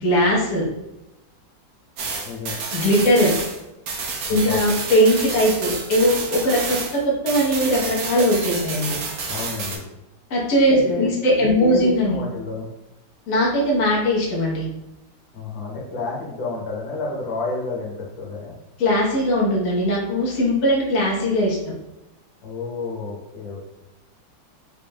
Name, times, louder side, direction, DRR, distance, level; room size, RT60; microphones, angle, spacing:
voice 1, 0.0-0.6 2.7-3.3 4.3-9.0 10.3-12.2 13.3-14.6 18.8-21.6, equal, 50° left, -5 dB, 1.3 m, -20 dB
sound 1, 2.0-7.0 7.3-9.8, right 4 dB, 65° right, 1.0 m, -29 dB
voice 2, 2.2-2.6 4.2-4.6 9.2-9.8 10.7-11.1 11.3-12.7 15.3-18.5 22.4-23.7, left 4 dB, 90° left, -3 dB, 1.7 m, -30 dB
4.1 x 3.5 x 2.2 m, 0.94 s
omnidirectional pair, 2.0 m